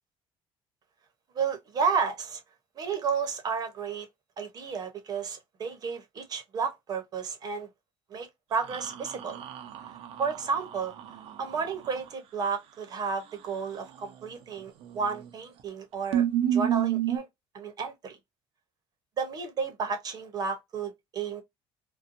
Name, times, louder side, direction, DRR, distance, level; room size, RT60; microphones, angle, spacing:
voice 1, 1.3-2.4 2.8-4.1 4.4-7.7 8.1-9.4 10.2-10.9 11.4-16.2 16.5-17.3 17.5-18.2 19.2-21.4, right 5 dB, 40° right, 0.8 m, -32 dB
sound 1, 8.7-12.1 14.8-15.3 15.6-15.7 16.1-17.2, right 10 dB, 65° right, 0.5 m, -30 dB
2.6 x 2.2 x 2.5 m
cardioid pair, 135°, 10 cm